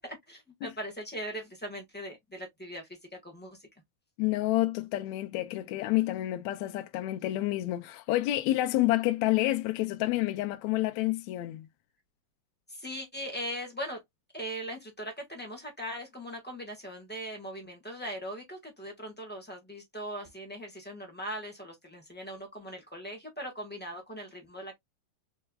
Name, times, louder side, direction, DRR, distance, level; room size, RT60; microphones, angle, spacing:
voice 1, 0.0-3.7 12.7-14.0 14.3-24.7, equal, 10° left, 0.7 m, -40 dB
voice 2, 4.2-11.7, left 16 dB, 75° left, 1.8 m, -29 dB
4.6 x 4.4 x 2.4 m
omnidirectional pair, 3.8 m